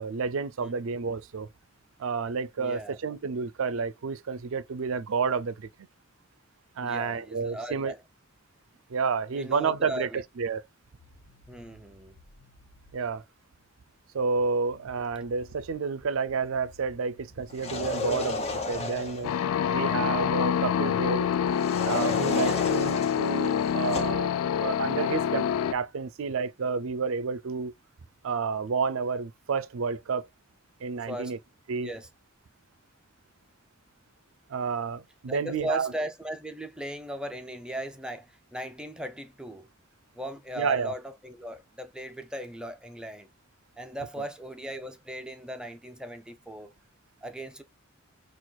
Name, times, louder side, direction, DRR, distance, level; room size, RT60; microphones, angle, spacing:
voice 1, 0.0-1.5 2.0-5.7 6.8-7.9 8.9-10.1 10.4-10.7 12.9-13.2 14.1-19.3 19.7-21.3 21.8-24.3 24.6-25.4 25.7-27.7 28.2-30.3 30.8-31.4 31.7-31.9 34.5-35.9 40.6-40.9, right 5 dB, 70° right, 0.4 m, -30 dB
voice 2, 2.6-3.0 6.8-8.0 9.3-10.2 11.5-12.2 20.0-20.1 22.4-22.7 31.1-31.4 31.8-32.1 35.3-39.7 40.1-43.3 43.8-46.7 47.2-47.6, right 1 dB, 5° right, 0.5 m, -38 dB
sound 1, 11.0-13.7 14.0-14.1 14.4-22.3 22.6-22.9 23.2-23.3 23.6-23.7 23.9-24.1 24.3-24.4 24.8-25.6, left 2 dB, 65° left, 0.8 m, -57 dB
sound 2, 17.5-19.4 21.6-24.3, left 2 dB, 30° left, 0.7 m, -34 dB
sound 3, 19.2-25.7, left 8 dB, 85° left, 0.3 m, -26 dB
6.0 x 2.4 x 2.3 m
head